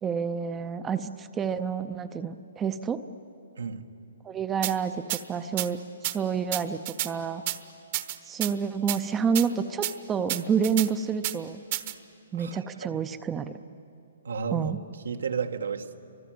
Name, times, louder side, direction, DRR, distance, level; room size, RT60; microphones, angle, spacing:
voice 1, 0.0-3.0 4.2-5.8 6.1-7.4 8.2-11.6 12.3-13.6 14.5-14.8, right 6 dB, 10° right, 9 dB, 0.6 m, -29 dB
sound 1, 4.6-4.7 5.1-5.2 5.6-5.7 6.0-6.1 6.5-7.1 7.5-7.6 7.9-8.5 8.9-9.0 9.3-9.5 9.8-9.9 10.3-10.9 11.2-11.3 11.7-11.9, right 15 dB, 35° right, 1.0 m, -29 dB
voice 2, 12.4-12.9 14.2-14.7 15.0-16.0, right 6 dB, 90° right, 6 dB, 1.6 m, -32 dB
29.5 x 24.5 x 7.7 m, 2.6 s
hypercardioid pair, 165°, 0 cm